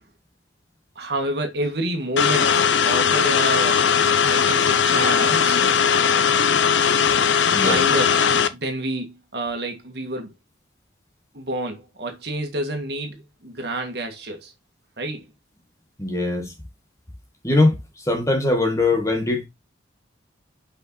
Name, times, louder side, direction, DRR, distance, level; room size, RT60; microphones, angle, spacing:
voice 1, 1.0-2.5 2.8-3.8 4.2-5.6 7.5-8.1 8.5-9.1 9.3-10.3 11.3-14.5 15.0-15.2, right 1 dB, 60° right, 1.8 m, -28 dB
sound 1, 2.2-8.5, left 7 dB, 80° left, 0.7 m, -19 dB
voice 2, 16.0-16.5 17.4-19.5, left 2 dB, 15° left, 1.9 m, -21 dB
6.1 x 5.6 x 4.3 m
head